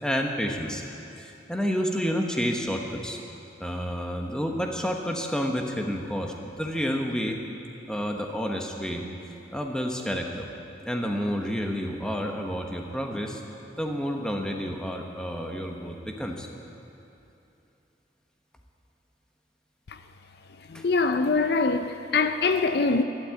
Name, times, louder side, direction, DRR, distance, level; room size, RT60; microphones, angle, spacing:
voice 1, 0.0-0.8 1.2-3.2 3.6-7.4 7.9-9.1 9.5-10.5 10.9-13.4 13.8-16.5 20.7-20.8, equal, 5° left, 1.1 m, -29 dB
voice 2, 20.7-23.0, left 4 dB, 55° left, 0.5 m, -23 dB
12.5 x 12.0 x 8.8 m
head